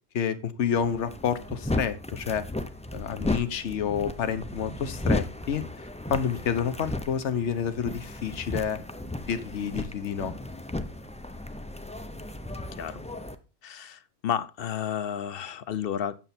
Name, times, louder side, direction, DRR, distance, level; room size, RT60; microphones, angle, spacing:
voice 1, 0.1-2.4 2.9-5.6 6.1-8.8 9.3-10.3, left 8 dB, 75° left, 11 dB, 1.2 m, -29 dB
sound 1, 0.8-13.3, left 1 dB, 10° left, 0.4 m, -34 dB
voice 2, 13.6-16.2, left 9 dB, 60° left, 15 dB, 0.8 m, -32 dB
8.9 x 6.8 x 4.2 m, 0.31 s
omnidirectional pair, 1.2 m